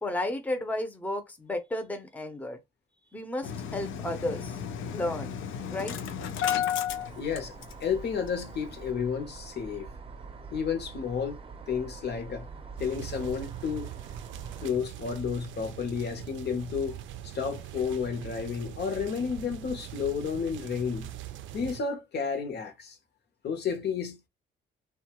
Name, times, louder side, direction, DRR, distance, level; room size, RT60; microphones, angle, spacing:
voice 1, 0.0-2.6 3.1-4.6 4.9-5.4 5.7-6.0, left 1 dB, 10° left, 0.6 m, -33 dB
Engine starting, 3.4-8.0 8.3-8.4 8.7-8.9, left 9 dB, 80° left, 0.6 m, -33 dB
sound 1, 6.9-14.7, right 4 dB, 30° right, 0.6 m, -45 dB
voice 2, 7.2-7.5 7.8-9.9 10.5-11.4 11.7-12.5 12.8-13.9 14.6-17.0 17.2-21.1 21.5-23.0 23.4-24.3, left 6 dB, 55° left, 0.8 m, -31 dB
sound 2, 12.8-21.8, right 12 dB, 75° right, 0.4 m, -42 dB
2.7 x 2.3 x 2.9 m
cardioid pair, 90°, 20 cm